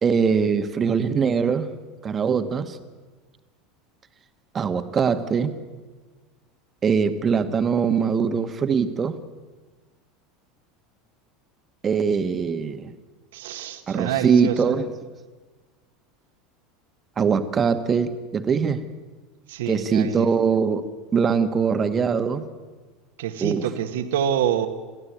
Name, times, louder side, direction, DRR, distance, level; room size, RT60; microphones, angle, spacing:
voice 1, 0.0-1.7 2.0-2.8 4.5-5.6 6.8-9.2 11.8-12.9 13.9-14.9 17.2-18.8 19.7-22.5 23.4-23.6, right 6 dB, 30° right, 9 dB, 1.7 m, -22 dB
voice 2, 13.3-14.6 19.5-20.3 23.2-24.7, right 10 dB, 65° right, 8 dB, 1.7 m, -26 dB
27.5 x 15.5 x 8.3 m, 1.3 s
figure-of-eight pair, 75°, 0 cm